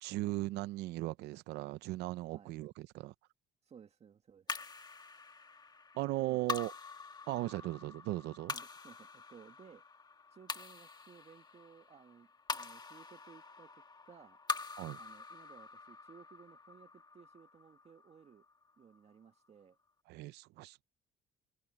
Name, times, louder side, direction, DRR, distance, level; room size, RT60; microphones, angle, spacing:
voice 1, 0.0-3.1 5.9-6.7 7.3-8.5 14.8-15.0 20.1-20.8, right 18 dB, 85° right, 0.7 m, -37 dB
voice 2, 3.6-4.5 6.2-6.5 7.3-7.7 8.5-9.8 10.3-13.7 14.1-14.4 14.9-18.5 18.8-19.8, right 7 dB, 40° right, 1.9 m, -59 dB
sound 1, 4.5-19.0, left 4 dB, 25° left, 1.6 m, -45 dB
open air
cardioid pair, 110°, 17 cm